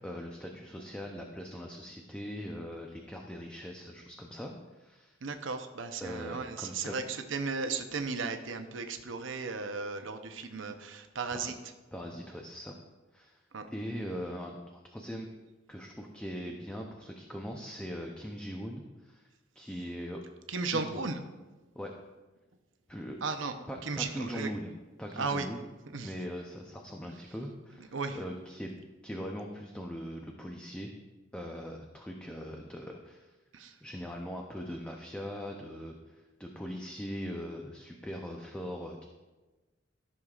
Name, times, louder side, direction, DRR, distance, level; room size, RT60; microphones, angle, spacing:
voice 1, 0.0-5.2 6.0-6.9 11.3-11.5 11.9-12.8 13.1-13.4 13.7-14.6 14.8-15.3 15.7-19.3 19.5-20.2 20.6-21.0 21.7-21.9 22.9-23.2 23.7-25.6 26.0-28.7 29.0-30.9 31.3-33.3 33.8-39.0, equal, 5° left, 1 dB, 0.6 m, -41 dB
voice 2, 5.2-11.5 13.5-13.7 20.5-21.2 23.2-23.5 23.8-24.5 25.2-25.5 25.9-26.1 27.9-28.2 33.5-33.7, right 4 dB, 85° right, 7 dB, 0.7 m, -35 dB
14.0 x 6.5 x 2.4 m, 1.2 s
head